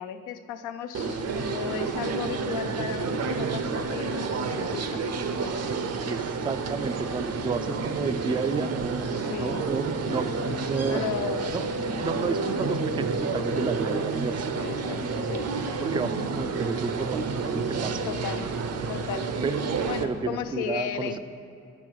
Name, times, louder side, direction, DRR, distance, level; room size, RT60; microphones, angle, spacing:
voice 1, 0.0-5.0 9.1-9.7 10.8-11.5 14.5-15.5 18.1-18.5 18.9-19.3 19.9-21.2, left 9 dB, 85° left, 9 dB, 0.5 m, -35 dB
sound 1, 0.9-20.0, right 4 dB, 55° right, 0.7 m, -29 dB
voice 2, 6.0-11.0 11.5-11.6 12.0-14.5 15.8-18.0 19.4-19.6 20.0-21.2, right 4 dB, 15° right, 11 dB, 0.4 m, -31 dB
9.5 x 6.1 x 4.7 m, 2.7 s
cardioid pair, 90°, 30 cm